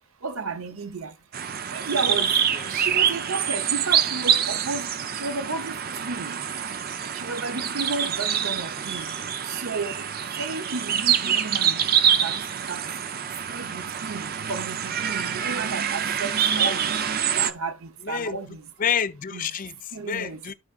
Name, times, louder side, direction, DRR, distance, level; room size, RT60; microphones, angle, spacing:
voice 1, 0.2-1.1 1.7-2.4 2.7-6.4 7.1-9.1 9.4-10.0 10.4-11.9 12.2-12.4 12.7-12.9 13.5-17.0 17.4-18.7 19.3-19.5 19.9-20.4, right 4 dB, 70° right, 0.8 m, -32 dB
sound 1, 1.3-17.5, right 8 dB, 40° right, 0.5 m, -26 dB
voice 2, 18.0-20.5, left 7 dB, 40° left, 0.4 m, -29 dB
12.5 x 4.8 x 2.4 m
head